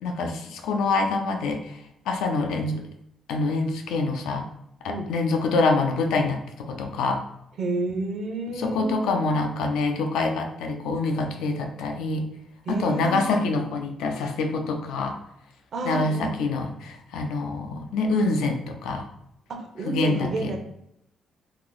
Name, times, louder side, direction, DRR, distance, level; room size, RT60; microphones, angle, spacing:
voice 1, 0.0-2.8 3.3-4.5 4.8-7.2 8.5-12.3 12.7-15.2 15.8-19.0 19.9-20.5, left 3 dB, 90° left, 4 dB, 0.5 m, -26 dB
voice 2, 7.6-9.2 12.7-13.5 15.7-16.4 19.5-20.6, right 2 dB, 60° right, 3 dB, 0.7 m, -30 dB
2.9 x 2.0 x 3.8 m, 0.80 s
cardioid pair, 90°, 0 cm